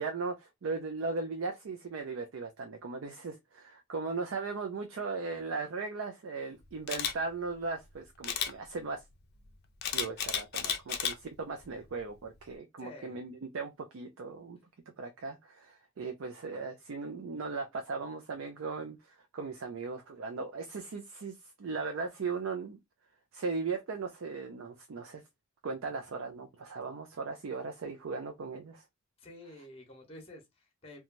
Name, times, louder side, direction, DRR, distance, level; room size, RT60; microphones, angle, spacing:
voice 1, 0.0-9.0 9.9-14.6 15.0-22.8 23.3-25.2 25.6-28.8, right 4 dB, 80° right, 0.5 m, -38 dB
Camera, 6.9-7.1 8.2-8.5 9.8-11.1 11.6-11.9, left 8 dB, 50° left, 0.5 m, -32 dB
voice 2, 12.8-13.2 29.2-31.0, left 1 dB, 30° left, 0.8 m, -50 dB
3.0 x 2.3 x 2.4 m
head